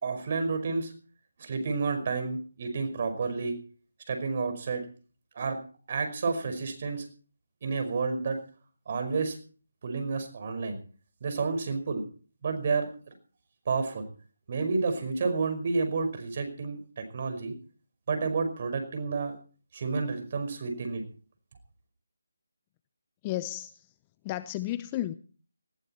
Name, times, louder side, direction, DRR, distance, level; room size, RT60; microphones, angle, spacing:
voice 1, 0.0-0.9 1.4-3.6 4.1-4.9 5.4-5.6 5.9-7.1 7.6-8.4 8.9-9.4 9.8-10.8 11.2-12.0 12.4-12.9 13.7-14.1 14.5-17.5 18.1-19.4 19.7-21.0, right 4 dB, 35° right, 7 dB, 5.2 m, -30 dB
voice 2, 23.2-23.9 24.2-25.1, left 14 dB, 15° left, 14 dB, 0.7 m, -33 dB
19.5 x 15.0 x 4.4 m, 0.41 s
figure-of-eight pair, 170°, 0 cm